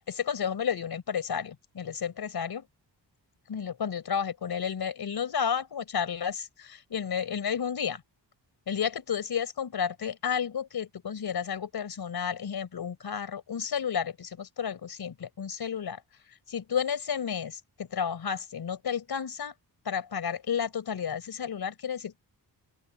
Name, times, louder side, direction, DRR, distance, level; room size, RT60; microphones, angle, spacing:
voice 1, 0.0-2.6 3.5-8.0 8.7-16.0 16.5-19.5 19.8-22.2, left 7 dB, 60° left, 4.3 m, -32 dB
open air
wide cardioid pair, 165°, 42 cm